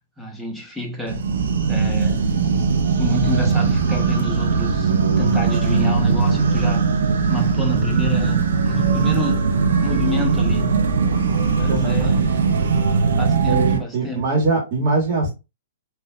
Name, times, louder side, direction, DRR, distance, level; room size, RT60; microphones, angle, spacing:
voice 1, 0.2-1.3 1.7-4.9 5.2-6.9 7.3-9.5 9.8-10.9 11.6-12.4 13.2-14.2, left 1 dB, ahead, 1.1 m, -29 dB
sound 1, 1.1-13.8, right 5 dB, 75° right, 0.8 m, -19 dB
voice 2, 11.7-12.1 13.5-15.3, right 3 dB, 45° right, 2.1 m, -22 dB
4.3 x 3.2 x 2.4 m
hypercardioid pair, 140°, 0 cm